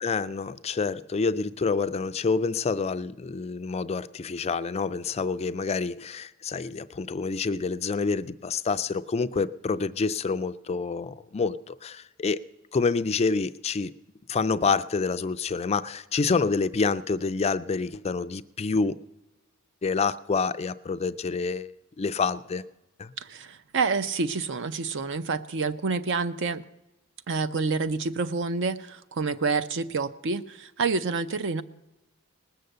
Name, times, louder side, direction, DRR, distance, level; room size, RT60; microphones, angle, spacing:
voice 1, 0.0-12.4 12.7-13.9 14.3-19.0 19.8-22.6 23.0-23.1, left 4 dB, 30° left, 13 dB, 0.4 m, -27 dB
voice 2, 23.2-26.6 27.3-31.6, right 4 dB, 60° right, 13 dB, 0.6 m, -28 dB
19.5 x 6.7 x 7.8 m, 1.0 s
head